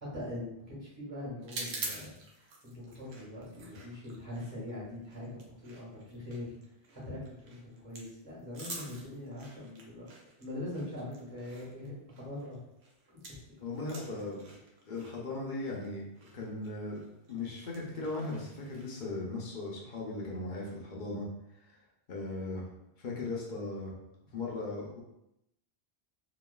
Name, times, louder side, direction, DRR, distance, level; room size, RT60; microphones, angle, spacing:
voice 1, 0.0-6.5 6.9-10.1 10.4-12.6 13.3-13.4 13.7-14.2, left 1 dB, 35° right, -7 dB, 1.4 m, -42 dB
sound 1, 1.4-13.5 13.8-19.1, right 3 dB, 75° right, 0.8 m, -47 dB
voice 2, 13.6-14.5 14.9-16.1 16.3-17.0 17.3-21.3 22.1-22.7 23.0-23.9 24.3-25.0, left 2 dB, 55° left, -3 dB, 0.7 m, -38 dB
3.0 x 2.3 x 2.2 m, 0.84 s
omnidirectional pair, 1.1 m